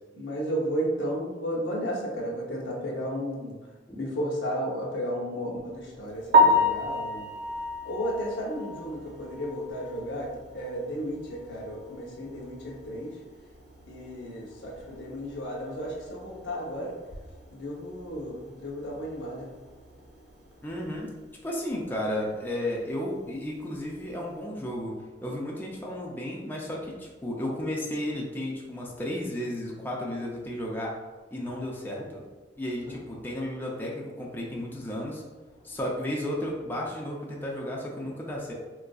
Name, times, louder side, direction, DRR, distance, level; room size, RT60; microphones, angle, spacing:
voice 1, 0.1-3.5 3.9-13.3 13.9-17.1 17.5-19.8 32.9-33.0, equal, 85° left, -2 dB, 0.8 m, -33 dB
Piano, 6.3-10.3 10.7-10.8 11.3-11.4 11.7-11.8 14.9-15.0 23.5-23.7, left 1 dB, 60° right, 0.5 m, -26 dB
voice 2, 20.6-21.1 21.4-24.9 25.2-30.9 31.3-32.2 32.6-35.2 35.6-38.5, left 1 dB, 10° left, -3 dB, 0.4 m, -33 dB
3.7 x 2.4 x 2.3 m, 1.3 s
head